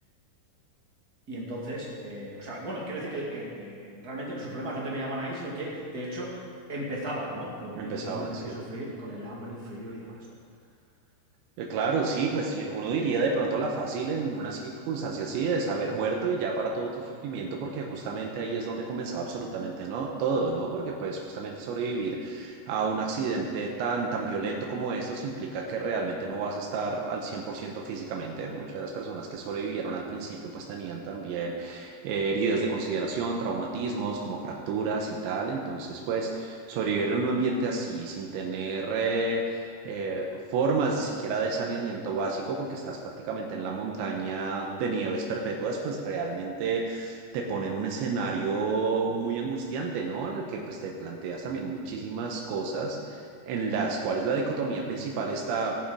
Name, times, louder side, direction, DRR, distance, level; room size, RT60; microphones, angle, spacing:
voice 1, 1.3-6.4 6.7-10.2, right 1 dB, 35° right, -4 dB, 1.6 m, -36 dB
voice 2, 7.8-8.6 11.6-55.8, right 4 dB, 85° right, 0 dB, 3.4 m, -30 dB
19.0 x 7.3 x 5.1 m, 2.2 s
omnidirectional pair, 5.2 m